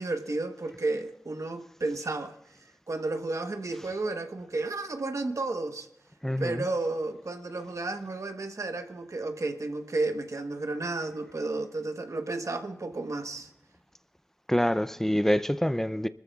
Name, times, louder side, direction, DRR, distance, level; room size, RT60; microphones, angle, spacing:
voice 1, 0.0-2.4 2.9-5.9 6.4-13.5, right 2 dB, 70° right, 1.1 m, -32 dB
voice 2, 6.2-6.6 14.5-16.1, equal, 5° left, 0.4 m, -26 dB
23.5 x 14.0 x 2.4 m
wide cardioid pair, 70°, 6 cm